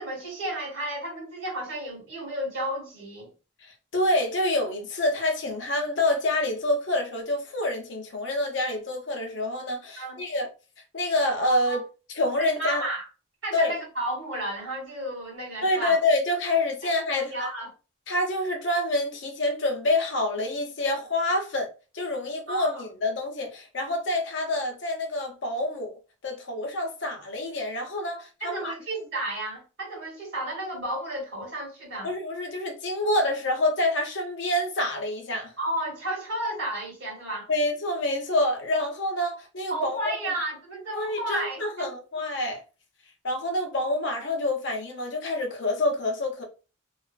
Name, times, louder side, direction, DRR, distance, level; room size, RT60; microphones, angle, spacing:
voice 1, 0.0-3.3 10.0-10.2 11.5-11.8 12.4-13.1 13.4-16.0 17.1-17.7 22.5-22.8 28.4-32.1 35.6-37.5 39.7-41.9, right 1 dB, 60° right, 1.2 m, -32 dB
voice 2, 3.6-10.5 10.9-11.8 12.1-12.8 13.5-13.7 15.6-17.5 18.1-21.7 21.9-25.9 26.2-28.7 32.0-35.5 37.5-40.1 40.9-42.6 43.2-46.4, left 1 dB, 60° left, 0.6 m, -27 dB
2.4 x 2.2 x 2.4 m
head